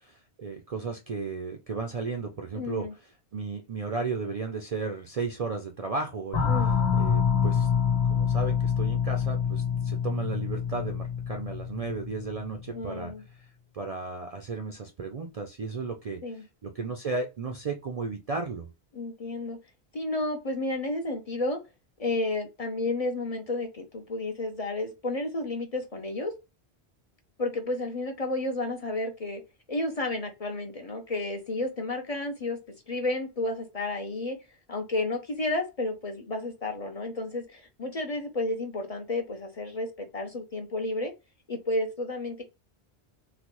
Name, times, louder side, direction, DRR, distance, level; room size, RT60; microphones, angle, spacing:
voice 1, 0.1-7.7 8.1-18.7, right 4 dB, 50° right, 4 dB, 0.4 m, -34 dB
voice 2, 2.5-2.9 6.5-6.7 12.7-13.2 16.2-16.4 18.9-19.6 19.9-21.6 22.0-26.3 27.4-29.4 29.7-32.6 32.9-34.4 34.7-41.1 41.5-42.4, left 2 dB, 45° left, 4 dB, 0.6 m, -31 dB
sound 1, 6.3-12.7, left 7 dB, 80° left, 1.1 m, -26 dB
3.9 x 2.1 x 3.0 m, 0.26 s
omnidirectional pair, 1.1 m